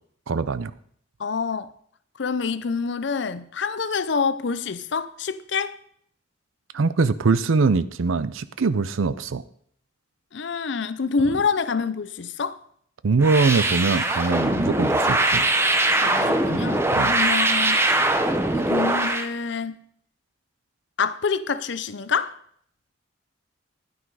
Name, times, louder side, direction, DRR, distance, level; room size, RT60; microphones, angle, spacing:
voice 1, 0.3-0.7 6.7-9.4 13.0-15.4 16.9-17.2, right 4 dB, 85° right, 0.6 m, -22 dB
voice 2, 1.2-1.7 2.2-5.8 10.3-12.6 16.0-17.8 18.5-19.8 21.0-22.4, left 5 dB, 60° left, 0.5 m, -26 dB
sound 1, 13.2-19.3, right 2 dB, 10° right, 0.8 m, -21 dB
10.5 x 9.5 x 4.7 m
head